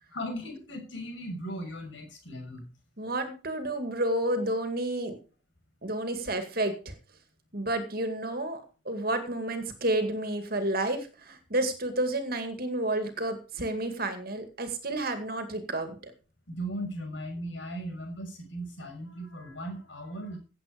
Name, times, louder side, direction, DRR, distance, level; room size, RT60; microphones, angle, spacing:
voice 1, 0.1-2.7 16.5-20.4, equal, 70° left, 2 dB, 6.6 m, -37 dB
voice 2, 3.0-5.2 5.8-6.9 7.5-16.1, right 1 dB, 50° right, 8 dB, 2.2 m, -30 dB
16.0 x 8.2 x 5.2 m, 0.34 s
head